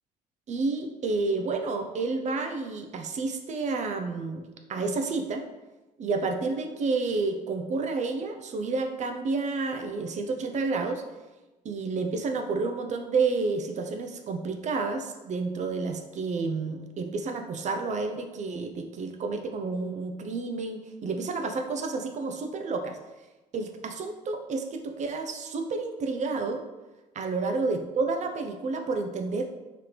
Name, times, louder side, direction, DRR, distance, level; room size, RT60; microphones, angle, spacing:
voice 1, 0.5-5.5 6.0-11.0 11.6-23.0 23.5-26.6 27.2-29.5, right 3 dB, 35° right, 5 dB, 0.5 m, -30 dB
4.6 x 3.5 x 3.2 m, 1.1 s
figure-of-eight pair, 50°, 21 cm